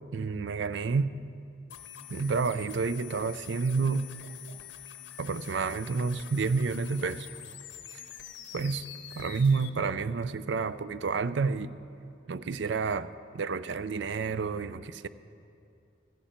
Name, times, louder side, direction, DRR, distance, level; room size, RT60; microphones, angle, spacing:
voice 1, 0.1-1.1 2.1-4.1 5.2-7.3 7.9-8.0 8.5-8.8 9.1-11.7 12.3-15.1, right 4 dB, 60° right, 15 dB, 0.4 m, -29 dB
sound 1, 1.7-9.7, left 11 dB, 60° left, 0.7 m, -46 dB
15.5 x 15.0 x 4.3 m, 2.5 s
head